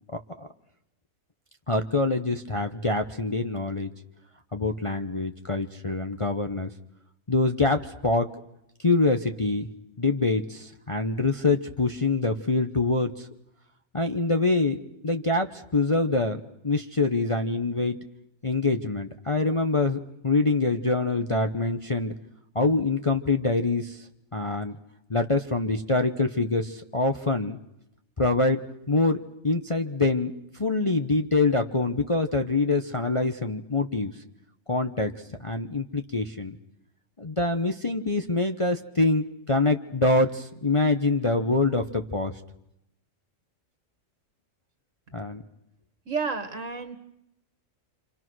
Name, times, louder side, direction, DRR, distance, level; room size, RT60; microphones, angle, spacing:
voice 1, 0.1-0.5 1.7-3.9 4.5-6.7 7.3-8.3 8.8-9.7 10.0-13.3 13.9-18.0 18.4-22.1 22.5-24.1 24.3-24.8 25.1-27.6 28.2-34.1 34.7-35.1 35.4-36.6 37.2-42.3 45.1-45.4, left 3 dB, 25° left, 5 dB, 0.9 m, -25 dB
voice 2, 46.1-47.0, right 5 dB, 65° right, 8 dB, 2.0 m, -30 dB
28.0 x 27.0 x 6.3 m, 0.83 s
omnidirectional pair, 1.4 m